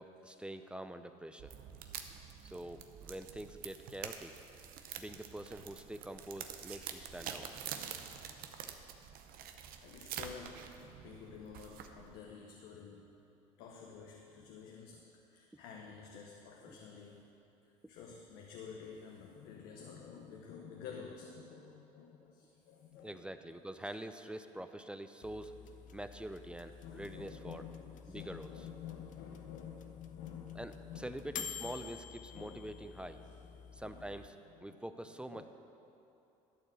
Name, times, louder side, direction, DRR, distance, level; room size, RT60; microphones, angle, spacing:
voice 1, 0.0-1.5 2.4-4.3 4.9-7.5 15.5-15.6 16.7-16.8 23.0-25.5 25.9-27.7 28.1-28.8 30.6-33.2 33.7-35.5, right 1 dB, 5° right, 9 dB, 0.5 m, -45 dB
sound 1, 1.4-12.2, right 8 dB, 65° right, 0.7 m, -47 dB
voice 2, 9.8-13.1 13.6-17.2 17.6-23.3 26.8-31.3 31.6-31.8 32.3-32.8 33.1-34.1 34.6-34.8 35.3-35.5, left 7 dB, 75° left, 1 dB, 0.9 m, -50 dB
sound 2, 25.2-34.3, left 8 dB, 55° left, 0.6 m, -50 dB
12.0 x 4.4 x 7.6 m, 2.8 s
supercardioid pair, 80°, 16 cm